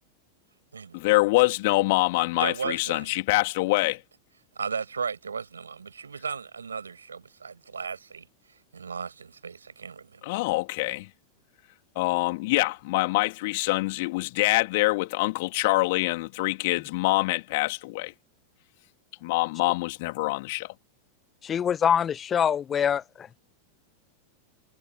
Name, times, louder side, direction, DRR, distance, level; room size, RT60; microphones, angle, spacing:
voice 1, 0.9-4.0 10.2-11.1 11.9-18.1 19.2-20.7, left 22 dB, 50° left, 3.2 m, -25 dB
voice 2, 2.3-3.2 4.5-8.3 8.7-10.3, right 5 dB, 75° right, 6.3 m, -35 dB
voice 3, 21.4-23.0, left 8 dB, 25° left, 1.5 m, -24 dB
figure-of-eight pair, 90°, 0 cm